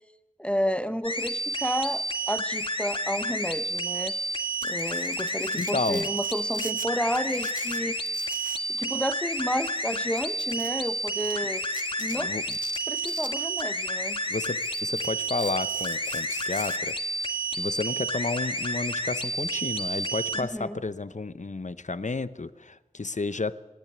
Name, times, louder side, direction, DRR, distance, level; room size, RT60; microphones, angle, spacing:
voice 1, 0.4-4.1 4.6-8.0 8.7-11.6 12.0-12.3 12.9-14.2 20.3-20.8, equal, 10° left, 12 dB, 0.8 m, -31 dB
sound 1, 1.0-20.4, right 1 dB, 40° left, 1.7 m, -30 dB
Domestic sounds home sounds, 4.4-6.9 7.2-8.7 8.9-9.1 9.6-10.7 11.2-11.3 11.7-12.2 12.5-13.8 14.1-16.8, left 3 dB, 85° left, 1.2 m, -43 dB
voice 2, 5.5-6.1 12.2-12.6 14.3-17.0 17.5-23.6, left 3 dB, 65° left, 15 dB, 0.8 m, -31 dB
26.0 x 10.5 x 9.3 m, 1.1 s
wide cardioid pair, 40°, 13 cm